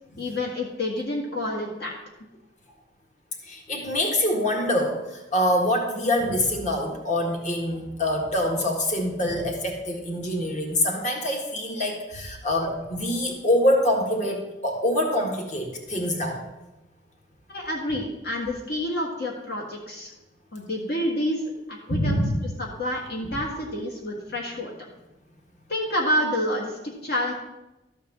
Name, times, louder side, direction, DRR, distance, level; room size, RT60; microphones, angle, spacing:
voice 1, 0.2-2.0 17.5-20.1 20.5-21.4 21.7-22.1 22.6-24.7 25.7-27.3, left 1 dB, 55° left, -1 dB, 1.5 m, -28 dB
voice 2, 3.4-16.4 21.9-22.4, left 1 dB, 40° left, 1 dB, 1.7 m, -25 dB
13.0 x 4.6 x 7.2 m, 1.0 s
head